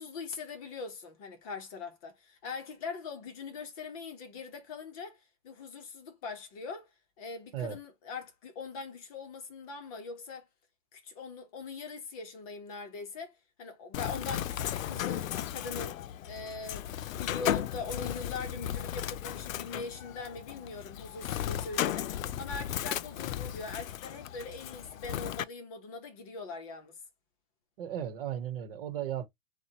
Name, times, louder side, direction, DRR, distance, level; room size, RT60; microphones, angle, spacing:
voice 1, 0.0-6.9 7.2-10.5 10.9-27.0, left 4 dB, 25° left, 1.1 m, -42 dB
Bird, 13.9-25.4, left 11 dB, 75° left, 0.6 m, -35 dB
voice 2, 27.8-29.3, right 10 dB, 45° right, 1.1 m, -35 dB
7.1 x 2.4 x 3.0 m
supercardioid pair, 175°, 40 cm